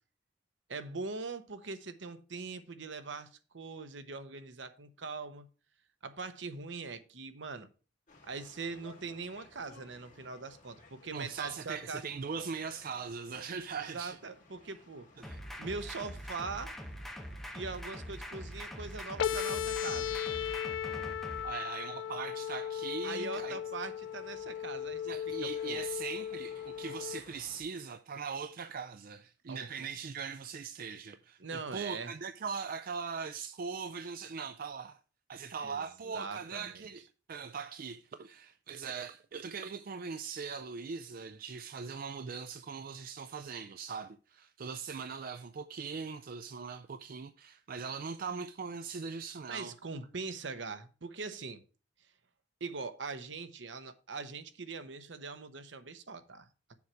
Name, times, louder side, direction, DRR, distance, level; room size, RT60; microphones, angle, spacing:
voice 1, 0.7-5.5 6.0-7.7 8.3-12.0 13.7-15.1 15.6-16.8 17.5-20.2 23.0-25.8 29.5-30.0 31.4-32.1 35.6-36.8 49.5-51.6 52.6-56.7, right 4 dB, 70° right, 0.9 m, -42 dB
sound 1, 8.1-27.6, left 2 dB, 45° left, 2.3 m, -60 dB
voice 2, 11.1-14.2 15.2-15.4 21.4-23.6 25.1-35.0 35.3-49.7, right 5 dB, 50° right, 0.4 m, -40 dB
sound 2, 15.2-21.4, equal, ahead, 1.3 m, -43 dB
sound 3, 19.2-27.2, left 9 dB, 70° left, 0.3 m, -36 dB
7.1 x 4.7 x 6.2 m
head